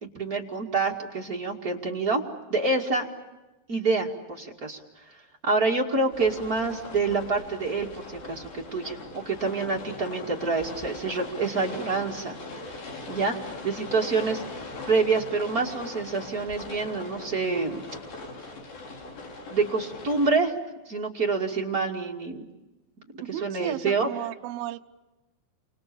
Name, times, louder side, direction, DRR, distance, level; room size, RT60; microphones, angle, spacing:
voice 1, 0.0-2.2 2.5-3.0 3.7-4.8 5.1-5.2 5.4-12.4 13.1-14.4 14.9-17.9 19.5-20.5 20.8-22.4 23.1-24.1, right 4 dB, 40° right, 0 dB, 1.3 m, -27 dB
sound 1, 6.1-20.3, left 2 dB, 50° left, 5.5 m, -40 dB
voice 2, 23.2-24.8, right 14 dB, 75° right, 7 dB, 2.3 m, -34 dB
29.5 x 27.0 x 7.0 m, 1.1 s
omnidirectional pair, 5.6 m